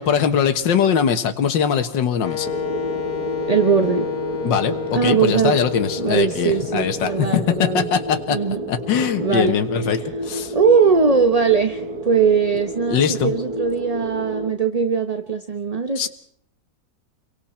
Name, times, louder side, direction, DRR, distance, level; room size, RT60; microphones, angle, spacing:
voice 1, 0.0-2.5 4.4-8.4 8.7-10.5 12.9-13.3 16.0-16.1, left 7 dB, 75° left, 7 dB, 2.0 m, -21 dB
Wind instrument woodwind instrument, 2.2-8.1, left 11 dB, 40° left, 1.1 m, -31 dB
sound 1, 2.4-14.5, right 1 dB, 55° right, 2.2 m, -30 dB
voice 2, 3.5-4.1 4.9-5.6 6.0-7.9 8.3-8.6 9.2-9.6 10.5-16.1, right 5 dB, 25° right, 6 dB, 0.8 m, -20 dB
29.5 x 23.5 x 4.4 m, 0.67 s
omnidirectional pair, 2.0 m